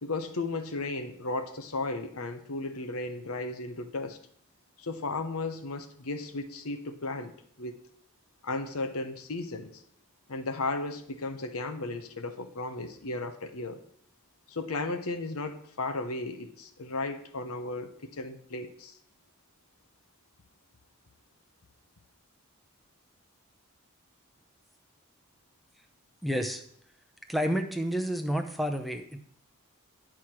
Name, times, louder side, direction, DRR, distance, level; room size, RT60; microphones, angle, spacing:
voice 1, 0.0-4.2 4.8-7.3 7.6-7.7 8.4-9.8 10.3-13.8 14.5-19.0, left 2 dB, 75° left, 8 dB, 0.9 m, -35 dB
voice 2, 26.2-26.6 27.3-29.2, equal, ahead, 5 dB, 0.6 m, -30 dB
10.5 x 4.8 x 6.0 m, 0.67 s
head